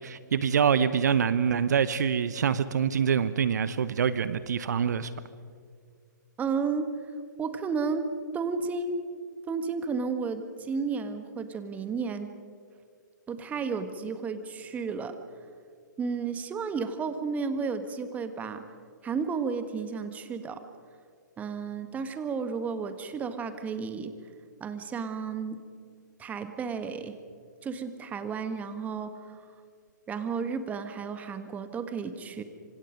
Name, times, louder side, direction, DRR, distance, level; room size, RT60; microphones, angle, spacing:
voice 1, 0.0-5.1, right 7 dB, 60° right, 15 dB, 0.9 m, -25 dB
voice 2, 6.4-6.9 7.4-8.1 8.3-9.0 9.5-12.3 13.3-15.1 16.0-18.6 19.0-20.6 21.4-24.1 24.6-25.6 26.2-27.2 27.6-29.4 30.1-32.4, right 5 dB, 15° right, 9 dB, 1.6 m, -32 dB
26.5 x 26.0 x 5.3 m, 2.1 s
figure-of-eight pair, 130°, 10 cm